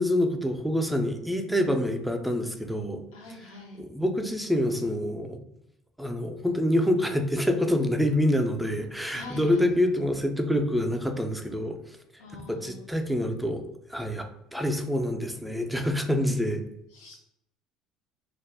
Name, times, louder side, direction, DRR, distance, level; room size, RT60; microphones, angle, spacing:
voice 1, 0.0-3.0 3.8-5.4 6.0-11.8 12.3-16.6, left 1 dB, ahead, 4 dB, 0.4 m, -26 dB
voice 2, 3.1-3.8 9.1-9.7 12.2-12.9 16.9-17.2, left 2 dB, 85° left, -2 dB, 0.5 m, -44 dB
2.3 x 2.0 x 3.3 m, 0.80 s
supercardioid pair, 90°, 0 cm